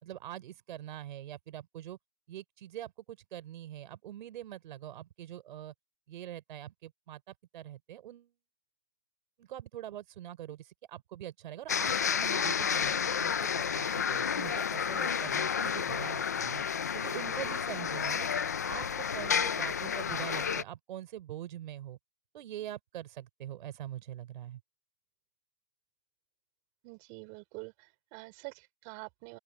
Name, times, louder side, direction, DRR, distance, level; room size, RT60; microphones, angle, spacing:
voice 1, 0.0-2.0 2.3-5.7 6.1-8.3 9.4-16.6 16.9-18.3 18.7-22.0 22.3-24.6, right 12 dB, 40° right, 4.2 m, -44 dB
sound 1, 11.7-20.6, left 7 dB, 15° left, 0.4 m, -31 dB
voice 2, 26.8-29.4, right 30 dB, 25° right, 4.2 m, -47 dB
open air
hypercardioid pair, 150°, 36 cm